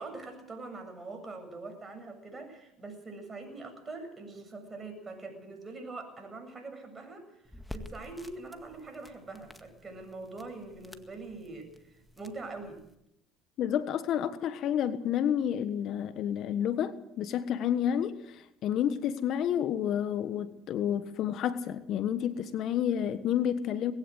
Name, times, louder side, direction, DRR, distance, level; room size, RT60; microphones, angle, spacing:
voice 1, 0.0-7.3 7.5-12.8, right 3 dB, 25° right, 6 dB, 7.9 m, -43 dB
sound 1, 7.4-12.9, left 1 dB, 5° left, 2.0 m, -50 dB
voice 2, 13.6-23.9, left 9 dB, 55° left, 12 dB, 1.4 m, -30 dB
20.5 x 16.0 x 8.1 m, 0.82 s
hypercardioid pair, 70°, 0 cm